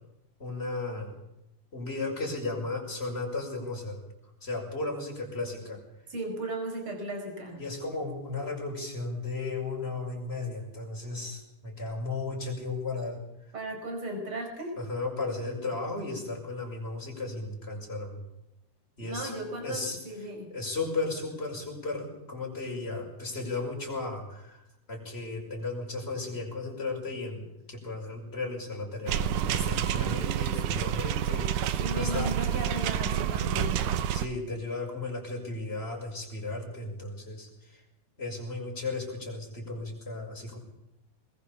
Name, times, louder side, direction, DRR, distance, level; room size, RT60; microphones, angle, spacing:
voice 1, 0.4-1.2 1.7-4.0 4.4-5.8 7.5-13.2 14.8-18.2 19.0-19.3 19.6-20.0 20.5-32.3 34.1-37.8 38.2-40.6, left 3 dB, 20° left, 0 dB, 5.7 m, -35 dB
voice 2, 6.1-7.6 13.5-14.8 19.0-20.5 31.8-33.8, right 1 dB, 40° right, 4 dB, 5.5 m, -36 dB
sound 1, 29.1-34.3, right 10 dB, 90° right, 2.6 m, -28 dB
22.0 x 21.0 x 7.1 m, 0.90 s
omnidirectional pair, 3.5 m